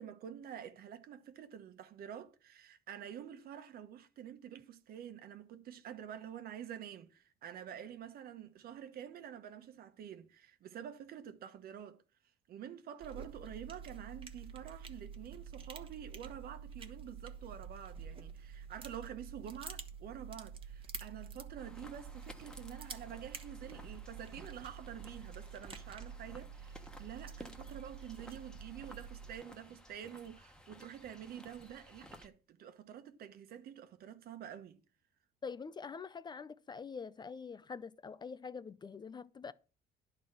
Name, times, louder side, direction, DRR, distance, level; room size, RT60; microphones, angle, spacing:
voice 1, 0.0-12.0 12.5-34.8, right 9 dB, 65° right, 1.1 m, -48 dB
sound 1, 13.0-29.4, right 6 dB, 30° right, 1.3 m, -48 dB
sound 2, 21.6-32.3, left 1 dB, 5° left, 1.2 m, -56 dB
voice 2, 35.4-39.5, left 5 dB, 25° left, 0.4 m, -45 dB
11.0 x 4.0 x 7.3 m
cardioid pair, 110°, 17 cm